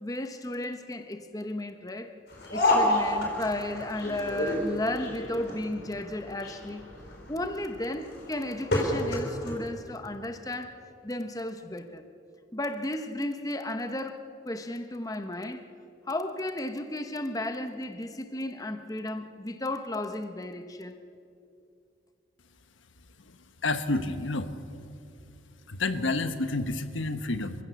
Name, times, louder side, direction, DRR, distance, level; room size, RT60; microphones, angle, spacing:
voice 1, 0.0-2.1 2.5-6.8 7.3-10.8 11.0-12.0 12.5-15.6 16.1-21.0, left 1 dB, 20° left, 0.9 m, -34 dB
sound 1, 2.3-9.6, left 1 dB, 55° left, 4.8 m, -29 dB
voice 2, 23.6-24.5 25.7-27.6, left 2 dB, 80° left, 1.3 m, -29 dB
29.0 x 15.5 x 7.1 m
head